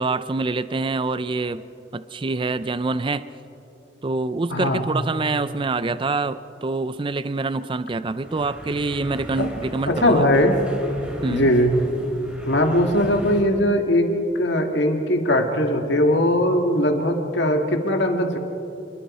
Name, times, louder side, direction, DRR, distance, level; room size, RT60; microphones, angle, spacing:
voice 1, 0.0-1.6 1.9-3.2 4.0-10.2 11.2-11.5, right 3 dB, 30° right, 14 dB, 0.4 m, -25 dB
voice 2, 4.5-4.8 9.4-9.5 9.9-10.6 11.3-11.7 12.4-18.4, left 1 dB, 70° left, 4 dB, 1.8 m, -20 dB
sound 1, 8.2-13.4, equal, 5° right, 4.4 m, -38 dB
28.5 x 22.0 x 4.2 m, 2.9 s
head